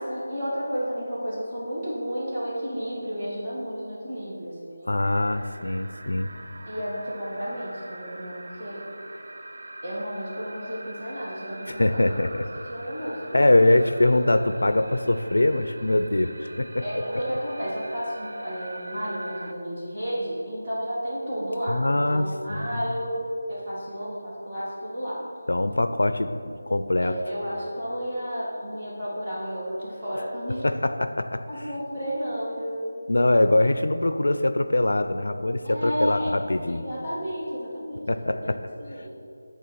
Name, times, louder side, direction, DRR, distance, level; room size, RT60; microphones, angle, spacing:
voice 1, 0.0-4.9 6.6-8.9 9.8-12.2 12.5-13.4 16.8-25.2 27.0-30.6 31.4-32.9 35.6-36.3 36.7-38.5 38.8-39.1, equal, 15° right, -11 dB, 1.7 m, -32 dB
voice 2, 4.9-6.3 11.7-12.4 13.3-17.0 21.7-22.8 25.5-27.1 30.6-31.4 33.1-36.8 38.1-38.6, left 1 dB, 85° left, 9 dB, 0.4 m, -23 dB
sound 1, 5.0-19.5, right 2 dB, 65° right, 0.5 m, -43 dB
9.3 x 3.4 x 5.8 m, 2.4 s
figure-of-eight pair, 175°, 0 cm